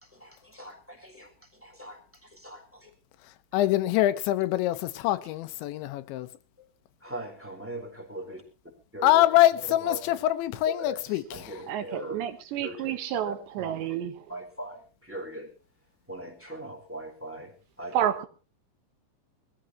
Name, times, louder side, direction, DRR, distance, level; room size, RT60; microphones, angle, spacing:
voice 1, 0.0-2.9 3.5-3.6 7.0-8.4 8.9-10.2 10.6-12.2 12.6-14.0 14.3-15.5 16.1-18.0, right 1 dB, 5° right, 3.3 m, -41 dB
voice 2, 3.5-6.3 9.0-11.2, left 14 dB, 85° left, 3.3 m, -24 dB
voice 3, 11.7-14.1 18.0-18.3, right 10 dB, 80° right, 3.6 m, -30 dB
22.5 x 15.0 x 3.1 m
omnidirectional pair, 5.2 m